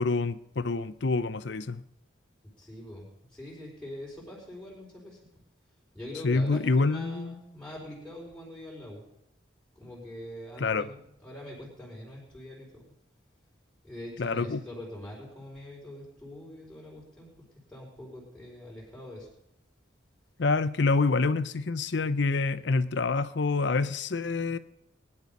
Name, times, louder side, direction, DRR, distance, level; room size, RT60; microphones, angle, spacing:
voice 1, 0.0-1.8 6.2-7.4 10.6-10.9 14.2-14.6 20.4-24.6, left 3 dB, 65° left, 15 dB, 0.6 m, -27 dB
voice 2, 2.6-5.2 5.9-9.0 9.8-12.8 13.8-17.3 17.7-19.3, left 1 dB, 5° left, -5 dB, 4.4 m, -43 dB
20.5 x 11.0 x 5.4 m, 0.83 s
head